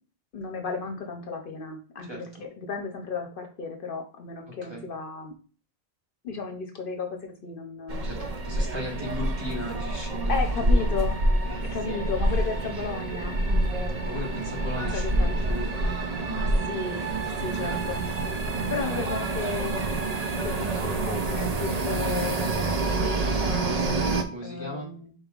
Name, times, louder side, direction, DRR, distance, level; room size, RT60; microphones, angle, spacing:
voice 1, 0.3-2.3 2.6-5.3 6.2-8.1 10.3-11.2 11.7-14.1 14.9-15.4 16.3-18.0 18.7-19.8 20.2-23.8 24.4-25.1, left 5 dB, 60° left, 5 dB, 0.9 m, -34 dB
voice 2, 2.0-2.4 4.5-4.8 8.0-8.2 8.4-11.0 11.9-12.0 14.0-16.1 17.5-17.8 18.6-18.9 24.3-24.9, left 1 dB, 25° right, -1 dB, 1.1 m, -37 dB
sound 1, 7.9-24.2, right 2 dB, 45° right, 0.6 m, -27 dB
5.2 x 4.0 x 2.4 m, 0.39 s
omnidirectional pair, 1.1 m